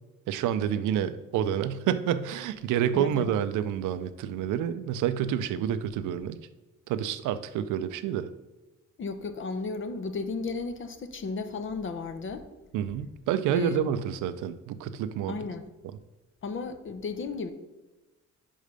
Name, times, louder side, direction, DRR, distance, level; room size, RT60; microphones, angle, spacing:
voice 1, 0.3-6.4 6.9-8.3 12.7-15.4, right 10 dB, 90° right, 12 dB, 0.5 m, -28 dB
voice 2, 2.9-3.3 9.0-12.5 13.5-13.8 15.3-15.7 16.4-17.5, left 4 dB, 40° left, 9 dB, 0.7 m, -34 dB
5.4 x 5.0 x 5.1 m, 1.2 s
cardioid pair, 90°, 30 cm